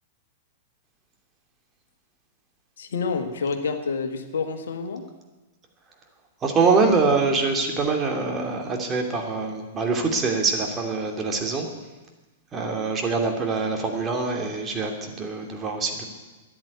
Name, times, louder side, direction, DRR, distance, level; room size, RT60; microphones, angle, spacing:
voice 1, 2.8-5.0, left 5 dB, 65° left, 6 dB, 1.7 m, -28 dB
voice 2, 6.4-11.7 12.5-16.0, right 4 dB, 20° right, 2 dB, 2.7 m, -24 dB
13.5 x 10.5 x 9.7 m, 1.2 s
figure-of-eight pair, 100°, 0 cm